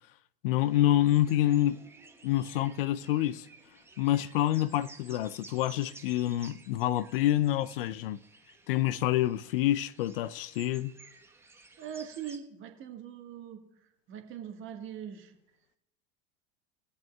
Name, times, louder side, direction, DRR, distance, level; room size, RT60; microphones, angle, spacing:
voice 1, 0.4-1.8 2.2-3.5 4.0-8.2 8.7-10.9, left 13 dB, 65° left, 0.5 m, -27 dB
sound 1, 0.6-12.4, right 3 dB, 10° right, 1.1 m, -54 dB
voice 2, 11.8-13.6 14.1-15.3, right 9 dB, 40° right, 1.5 m, -41 dB
19.5 x 8.0 x 2.3 m
hypercardioid pair, 85°, 30 cm